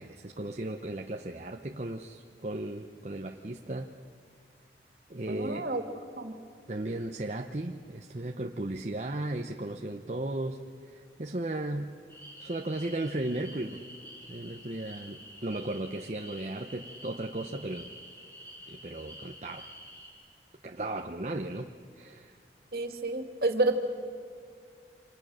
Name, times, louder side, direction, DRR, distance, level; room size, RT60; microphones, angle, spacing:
voice 1, 0.0-4.0 5.1-5.7 6.7-12.0 12.4-13.8 14.3-17.9 18.7-19.7 20.6-21.7 22.0-22.4, right 1 dB, 40° right, 4 dB, 0.9 m, -36 dB
voice 2, 5.3-5.8 6.2-6.3 22.7-23.7, right 2 dB, 60° right, 6 dB, 2.5 m, -29 dB
sound 1, 12.1-20.1, equal, 15° left, 7.0 m, -49 dB
29.0 x 26.5 x 6.5 m, 2.2 s
head